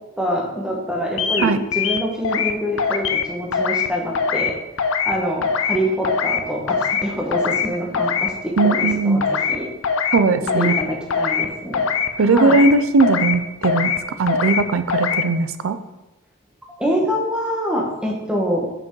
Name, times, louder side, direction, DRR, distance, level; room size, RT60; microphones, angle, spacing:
voice 1, 0.2-4.5 5.0-9.2 9.5-9.7 10.5-11.9 12.1-12.7 16.6-18.6, equal, 5° right, -2 dB, 1.1 m, -25 dB
sound 1, 1.2-1.4 1.7-2.5 2.8-3.2 3.5-3.9 4.1-4.5 4.8-5.1 5.4-5.8 6.0-6.4 6.7-7.0 7.3-7.7 7.9-8.3 8.6-8.9 9.2-9.6 9.8-10.2 10.5-10.8 11.1-11.5 11.7-12.1 12.4-12.7 13.0-13.4 13.6-14.0 14.3-14.6 14.9-15.2, left 6 dB, 75° left, 0.5 m, -21 dB
voice 2, 8.6-9.2 10.1-10.8 12.2-13.9 14.2-15.8, right 3 dB, 80° right, 12 dB, 0.5 m, -18 dB
5.8 x 5.2 x 4.6 m, 1.0 s
head